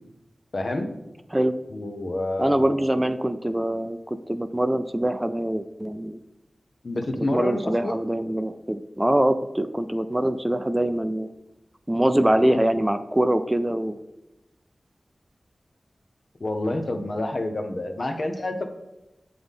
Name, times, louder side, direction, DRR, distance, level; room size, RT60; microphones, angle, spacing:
voice 1, 0.5-0.9 1.7-2.9 6.8-8.0 12.5-12.7 16.4-18.6, left 2 dB, 60° left, 5 dB, 0.8 m, -28 dB
voice 2, 2.4-6.2 7.2-11.3 11.9-14.0, right 1 dB, 20° right, 10 dB, 0.4 m, -24 dB
7.9 x 3.9 x 3.6 m, 0.96 s
cardioid pair, 45°, 0 cm